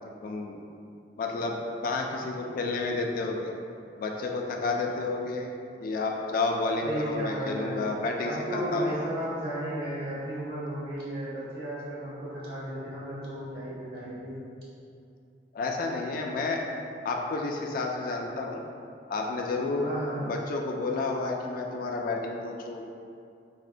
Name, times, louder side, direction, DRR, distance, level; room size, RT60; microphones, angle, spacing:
voice 1, 0.2-0.6 1.2-1.6 1.8-3.5 4.0-5.5 5.8-9.0 15.5-16.6 17.0-18.6 19.1-19.9 20.2-22.8, left 3 dB, 50° left, 1 dB, 0.3 m, -30 dB
voice 2, 6.8-8.0 8.2-14.4 19.8-20.3, right 1 dB, 60° right, -8 dB, 0.8 m, -34 dB
4.1 x 2.1 x 2.5 m, 2.5 s
head